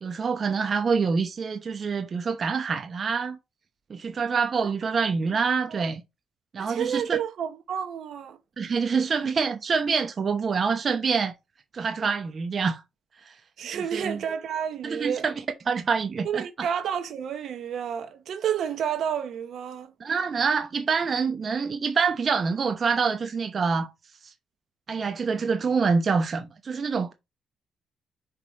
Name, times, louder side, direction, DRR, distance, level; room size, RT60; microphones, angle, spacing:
voice 1, 0.0-3.4 3.9-6.0 6.5-7.2 8.6-11.3 11.7-12.8 13.2-13.4 13.7-14.2 14.8-15.3 15.7-16.7 20.0-23.9 24.2-24.3 24.9-27.1, right 5 dB, 45° right, 0.9 m, -26 dB
voice 2, 6.6-8.4 13.6-15.2 16.2-19.9, right 8 dB, 70° right, 1.2 m, -30 dB
5.2 x 5.1 x 4.1 m
cardioid pair, 90°, 0 cm